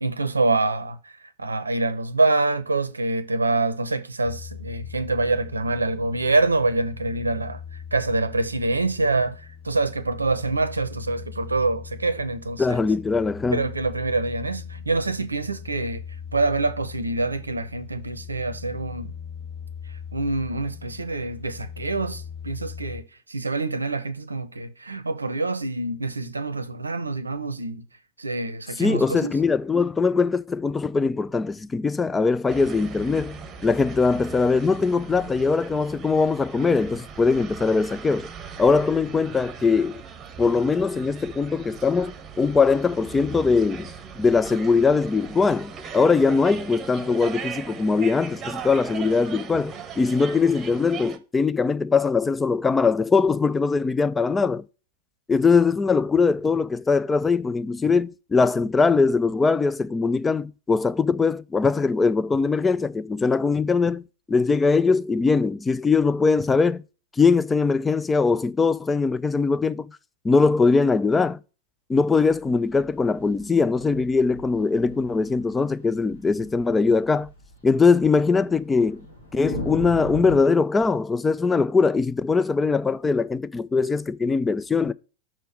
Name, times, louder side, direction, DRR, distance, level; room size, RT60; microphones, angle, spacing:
voice 1, 0.0-1.1 1.4-7.6 7.9-12.8 13.5-16.0 16.3-19.1 20.1-23.0 23.3-27.8 28.2-29.4, right 3 dB, 80° right, 0.7 m, -25 dB
sound 1, 4.2-23.0, left 7 dB, 35° left, 1.1 m, -40 dB
voice 2, 12.6-13.7 28.8-33.3 33.6-38.3 38.6-40.0 40.4-54.6 55.3-66.8 67.2-69.9 70.2-71.4 71.9-77.3 77.6-79.1 79.3-84.9, left 4 dB, 15° left, 0.4 m, -21 dB
sound 2, 32.5-51.2, right 6 dB, 25° right, 1.0 m, -39 dB
sound 3, 72.3-80.4, left 1 dB, 70° left, 2.5 m, -38 dB
6.1 x 4.4 x 6.3 m
figure-of-eight pair, 90°, 0 cm